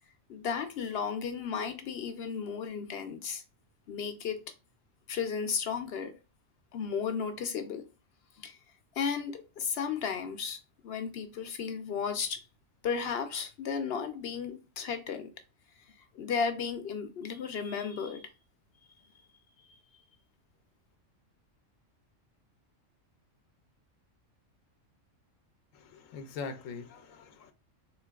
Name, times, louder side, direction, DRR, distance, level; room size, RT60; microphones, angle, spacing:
voice 1, 0.3-3.4 3.9-4.4 5.1-6.1 6.7-7.8 8.4-8.6 9.0-12.4 12.8-15.3 16.0-18.3, left 6 dB, 65° left, 0.7 m, -34 dB
voice 2, 25.7-27.5, left 5 dB, 85° left, 1.0 m, -42 dB
3.8 x 3.1 x 2.2 m
omnidirectional pair, 1.3 m